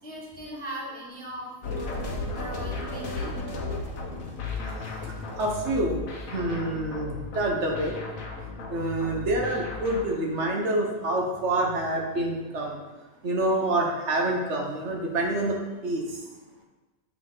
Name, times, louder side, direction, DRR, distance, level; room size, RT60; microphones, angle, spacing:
voice 1, 0.0-3.3, equal, 10° left, -3 dB, 0.7 m, -39 dB
sound 1, 1.6-10.2, left 3 dB, 80° left, 1.3 m, -35 dB
voice 2, 5.4-6.0 6.3-8.0 8.7-12.8 13.2-15.6 15.8-16.0, right 1 dB, 60° right, 0 dB, 1.2 m, -27 dB
7.3 x 4.1 x 3.6 m, 1.1 s
omnidirectional pair, 1.4 m